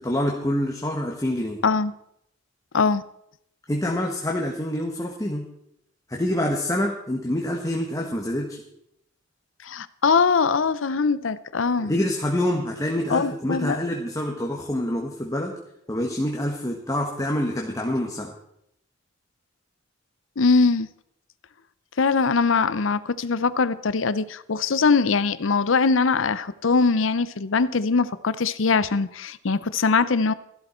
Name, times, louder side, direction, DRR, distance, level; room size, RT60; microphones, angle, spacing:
voice 1, 0.0-1.6 3.7-5.5 6.1-8.6 11.8-15.6 15.9-18.3, left 1 dB, 15° left, 0 dB, 1.4 m, -26 dB
voice 2, 9.6-11.9 13.1-13.8 20.4-20.9 22.0-30.3, left 4 dB, 75° left, 15 dB, 0.7 m, -22 dB
14.5 x 12.0 x 4.4 m, 0.76 s
head